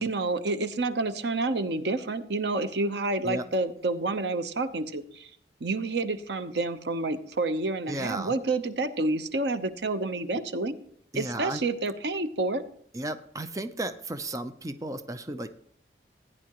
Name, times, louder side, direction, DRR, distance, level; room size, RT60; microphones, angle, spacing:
voice 1, 0.0-5.3 5.6-10.7 11.1-12.6, right 2 dB, 80° right, 10 dB, 0.9 m, -29 dB
voice 2, 7.9-8.3 11.1-11.6 12.9-15.6, right 1 dB, 20° right, 9 dB, 0.5 m, -34 dB
16.0 x 9.8 x 3.0 m, 0.65 s
head